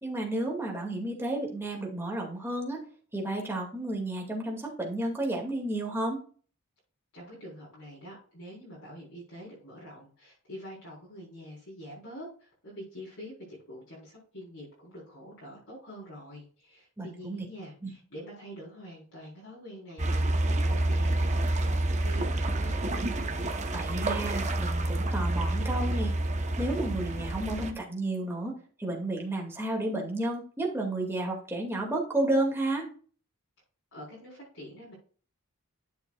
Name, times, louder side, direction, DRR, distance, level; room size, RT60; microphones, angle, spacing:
voice 1, 0.0-2.8 3.1-6.2 17.0-17.4 17.8-17.9 23.7-26.1 26.6-28.5 28.8-32.9, right 1 dB, 10° right, -1 dB, 2.3 m, -32 dB
voice 2, 7.1-22.7 33.9-34.9, equal, 60° left, -7 dB, 4.2 m, -46 dB
sound 1, 20.0-27.7, right 1 dB, 30° right, 1.0 m, -28 dB
11.5 x 7.1 x 2.4 m, 0.42 s
head